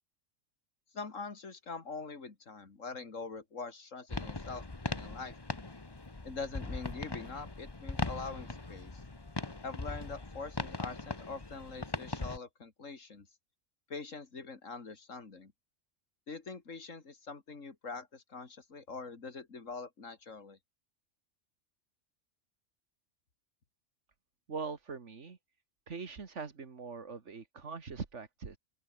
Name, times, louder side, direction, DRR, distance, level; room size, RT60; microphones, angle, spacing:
voice 1, 0.9-5.4 6.2-9.0 9.6-13.3 13.9-15.5 16.3-20.6, left 4 dB, 85° left, 2.8 m, -44 dB
sound 1, 4.1-12.4, left 2 dB, 20° left, 1.3 m, -40 dB
voice 2, 24.5-25.4 25.9-28.6, right 5 dB, 70° right, 2.2 m, -42 dB
open air
omnidirectional pair, 1.3 m